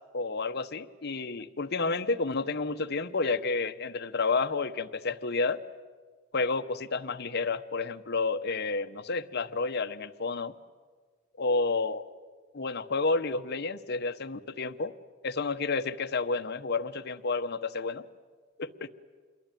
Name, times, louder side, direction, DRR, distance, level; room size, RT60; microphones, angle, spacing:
voice 1, 0.1-5.6 6.3-10.5 11.4-12.0 12.5-14.9 15.2-18.0 18.6-18.9, left 3 dB, 55° left, 9 dB, 1.0 m, -30 dB
27.5 x 22.5 x 9.1 m, 1.5 s
head